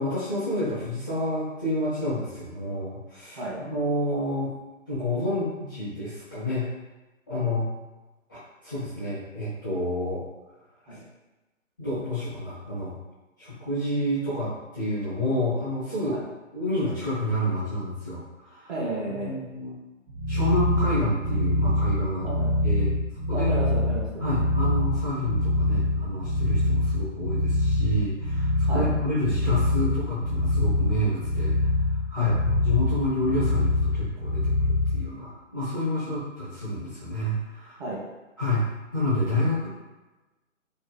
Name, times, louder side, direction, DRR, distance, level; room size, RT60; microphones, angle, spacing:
voice 1, 0.0-4.5 4.9-6.7 7.3-7.7 8.3-10.2 11.8-13.0 13.4-16.2 16.5-18.7 19.2-19.8 20.3-22.3 22.6-23.0 23.3-23.5 24.2-37.8 38.4-38.7 38.9-39.7, left 1 dB, 15° left, -12 dB, 0.5 m, -29 dB
voice 2, 18.7-19.4 22.2-22.5 23.3-24.2 28.7-28.9 32.2-32.3 37.8-38.0, right 2 dB, 40° right, -6 dB, 0.9 m, -32 dB
sound 1, 20.1-35.1, left 1 dB, 55° right, 0.5 m, -25 dB
2.8 x 2.4 x 2.2 m, 1.1 s
figure-of-eight pair, 135°, 39 cm